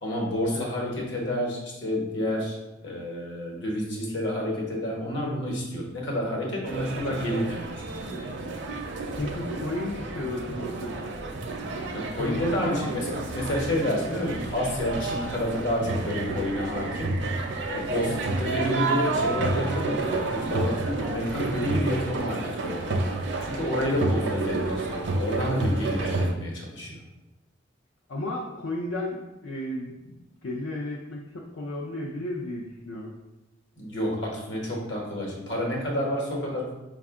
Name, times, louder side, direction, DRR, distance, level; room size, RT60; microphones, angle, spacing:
voice 1, 0.0-2.6 2.8-7.9 11.9-17.2 17.7-22.9 23.4-27.0 33.8-36.7, left 1 dB, 65° left, -2 dB, 1.1 m, -29 dB
sound 1, 6.7-26.3, right 2 dB, 60° right, 0.5 m, -30 dB
voice 2, 9.1-11.1 12.1-12.9 18.1-18.2 28.1-33.1, left 1 dB, 80° left, -2 dB, 0.5 m, -34 dB
5.0 x 2.4 x 3.5 m, 1.0 s
head